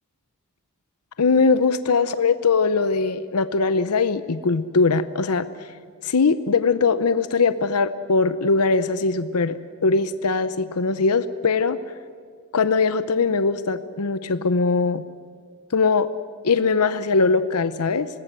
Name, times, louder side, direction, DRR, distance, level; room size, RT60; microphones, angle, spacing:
voice 1, 1.2-5.5 6.0-11.8 12.5-15.0 15.7-16.1 16.4-18.1, left 4 dB, 90° left, 13 dB, 0.8 m, -21 dB
26.5 x 19.5 x 7.6 m, 2.1 s
head